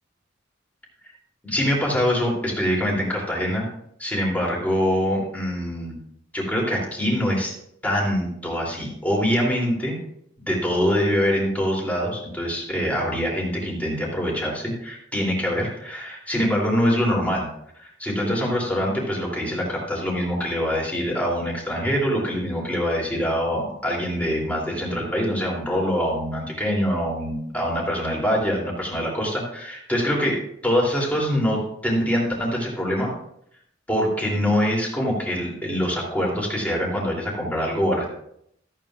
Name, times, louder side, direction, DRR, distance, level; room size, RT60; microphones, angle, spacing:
voice 1, 1.4-3.7 4.0-6.0 6.3-7.6 7.8-10.0 10.4-17.5 17.8-33.1 33.9-38.0, equal, 10° left, -3 dB, 3.0 m, -24 dB
14.0 x 9.0 x 2.4 m, 0.72 s
head